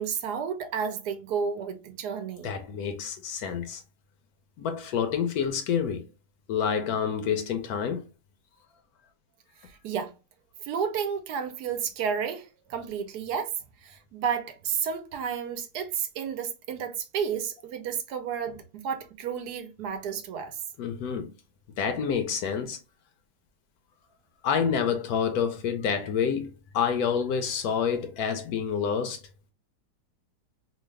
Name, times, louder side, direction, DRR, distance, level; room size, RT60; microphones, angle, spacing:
voice 1, 0.0-2.5 9.7-10.1 10.6-13.5 13.8-20.6, right 7 dB, 75° right, 1.1 m, -31 dB
voice 2, 2.4-3.8 4.6-6.0 6.5-8.0 20.8-21.3 21.8-22.8 24.4-29.2, left 7 dB, 70° left, 1.0 m, -28 dB
3.1 x 2.3 x 3.2 m
omnidirectional pair, 1.8 m